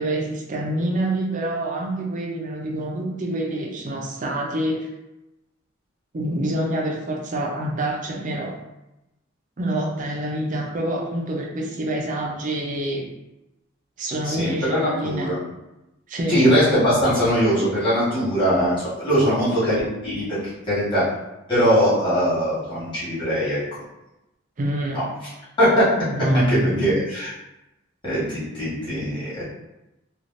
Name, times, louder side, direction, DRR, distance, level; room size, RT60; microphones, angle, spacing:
voice 1, 0.0-4.9 6.1-8.5 9.6-13.1 14.0-15.3 16.1-16.5 20.3-20.4 24.6-25.0 26.1-26.9, right 1 dB, 40° right, 0 dB, 0.5 m, -26 dB
voice 2, 14.2-15.4 16.3-20.4 20.7-21.0 21.5-23.8 24.9-25.0 25.6-25.9 26.5-27.3 28.0-29.4, equal, 25° left, -11 dB, 1.5 m, -21 dB
3.3 x 2.3 x 2.6 m, 0.94 s
head